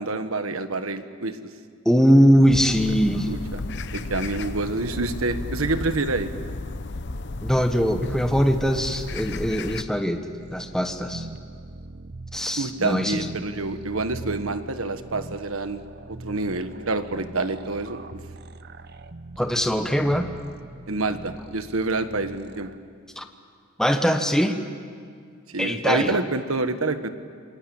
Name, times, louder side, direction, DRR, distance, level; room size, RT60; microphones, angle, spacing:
voice 1, 0.0-1.4 3.3-3.6 3.9-6.3 12.6-15.8 16.1-18.0 20.9-22.7 25.5-27.1, right 3 dB, 75° right, 10 dB, 1.4 m, -27 dB
voice 2, 1.8-3.3 7.4-11.3 12.3-13.3 19.4-20.3 23.2-23.3 23.8-24.6 25.6-26.2, equal, 5° left, 6 dB, 1.1 m, -21 dB
sound 1, 2.5-9.8, left 2 dB, 55° left, 0.9 m, -33 dB
sound 2, 10.3-22.8, right 2 dB, 50° right, 0.8 m, -41 dB
27.5 x 21.5 x 8.8 m, 2.2 s
head